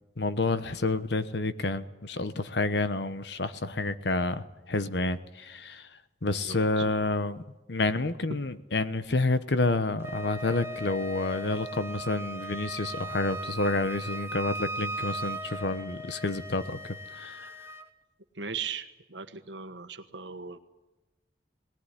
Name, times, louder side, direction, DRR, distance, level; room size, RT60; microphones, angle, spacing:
voice 1, 0.2-5.9 6.2-7.4 7.7-17.5, left 2 dB, 70° left, 1.1 m, -29 dB
voice 2, 6.3-6.9 18.3-20.6, right 6 dB, 85° right, 1.5 m, -38 dB
Wind instrument woodwind instrument, 10.0-17.9, right 1 dB, 15° right, 1.1 m, -38 dB
19.5 x 19.0 x 9.9 m
head